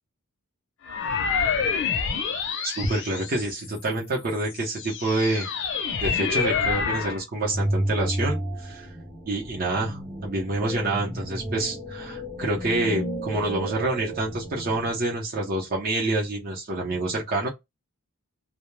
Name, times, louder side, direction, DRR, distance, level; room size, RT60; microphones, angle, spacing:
sound 1, 0.8-3.8 4.4-7.2, left 6 dB, 55° left, 0.5 m, -27 dB
voice 1, 2.6-5.5 6.0-8.9 9.3-17.5, right 2 dB, 40° right, 0.7 m, -27 dB
sound 2, 7.5-15.0, right 1 dB, 5° left, 0.5 m, -32 dB
2.2 x 2.1 x 3.1 m
head